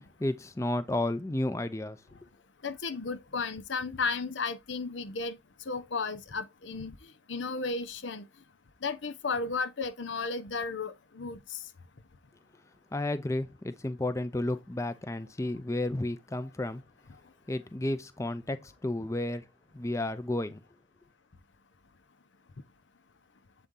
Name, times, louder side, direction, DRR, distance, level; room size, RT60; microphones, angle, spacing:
voice 1, 0.2-2.0 12.9-16.8 17.5-19.4 19.7-20.6, left 1 dB, 15° left, 0.5 m, -32 dB
voice 2, 2.6-5.4 5.7-8.2 8.8-11.6, left 4 dB, 85° left, 0.8 m, -34 dB
7.8 x 4.2 x 3.7 m
head